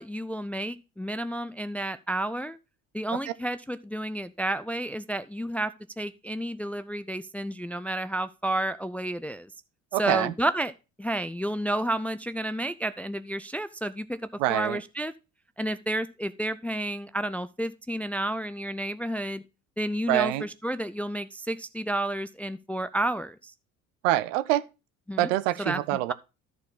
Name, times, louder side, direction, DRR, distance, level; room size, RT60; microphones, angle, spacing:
voice 1, 0.0-2.6 2.9-9.5 10.0-10.7 11.0-14.2 14.5-15.1 15.6-19.4 19.8-23.5 25.1-25.3 25.6-25.8, right 1 dB, 5° left, 0.4 m, -31 dB
voice 2, 9.9-10.3 14.4-14.8 20.1-20.5 24.0-24.7 25.2-26.1, right 15 dB, 65° right, 0.7 m, -25 dB
13.5 x 4.6 x 3.9 m
figure-of-eight pair, 60°, 41 cm